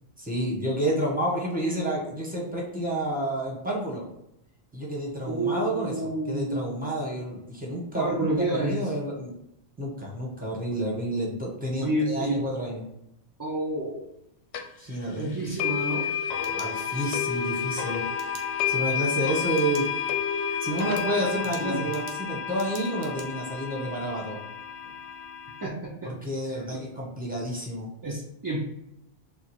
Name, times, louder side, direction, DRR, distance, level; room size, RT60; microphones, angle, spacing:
voice 1, 0.2-4.0 4.7-8.3 8.5-9.3 9.8-12.9 14.8-15.2 16.5-18.1 18.6-19.9 20.6-24.4 26.0-27.9, right 1 dB, 10° right, -3 dB, 1.1 m, -30 dB
voice 2, 5.3-6.6 8.0-8.8 11.8-12.4 13.4-14.1 15.1-16.1 21.6-21.8 25.6-26.1 26.7-26.8 28.0-28.6, right 1 dB, 30° right, -3 dB, 0.4 m, -29 dB
sound 1, 14.5-14.6 15.6-25.7, left 7 dB, 90° left, 0.9 m, -30 dB
sound 2, 16.3-17.2 18.2-18.4 19.5-19.9 20.3-20.4 20.8-23.3, right 4 dB, 85° right, 1.1 m, -46 dB
4.6 x 2.1 x 4.2 m, 0.80 s
omnidirectional pair, 1.1 m